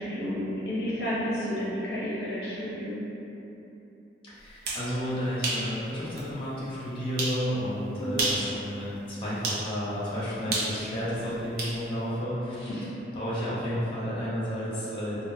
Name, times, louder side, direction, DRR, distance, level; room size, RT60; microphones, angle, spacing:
voice 1, 0.0-3.0 8.0-8.2 12.7-12.9, equal, 60° left, -8 dB, 0.5 m, -31 dB
voice 2, 4.2-12.7 13.1-15.2, equal, 30° left, -9 dB, 0.7 m, -31 dB
sound 1, 4.4-4.9 5.4-5.7 6.2-6.3 7.2-7.4 8.1-8.5 9.4-9.6 10.5-11.8, right 2 dB, 55° right, 0.5 m, -29 dB
3.6 x 2.0 x 2.6 m, 3.0 s
head